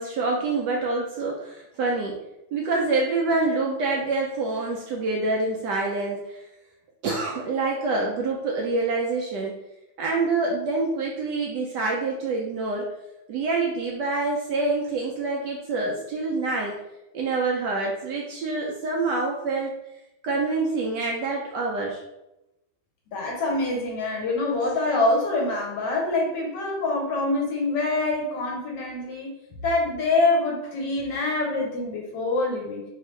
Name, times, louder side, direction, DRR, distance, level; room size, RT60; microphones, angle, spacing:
voice 1, 0.0-2.2 2.5-6.4 7.0-9.6 10.0-12.9 13.3-16.7 17.1-19.7 20.2-22.0, right 3 dB, 75° right, -1 dB, 1.0 m, -26 dB
voice 2, 23.1-29.3 29.6-32.8, left 2 dB, 65° left, -1 dB, 1.2 m, -25 dB
3.4 x 2.8 x 3.1 m, 0.91 s
omnidirectional pair, 2.2 m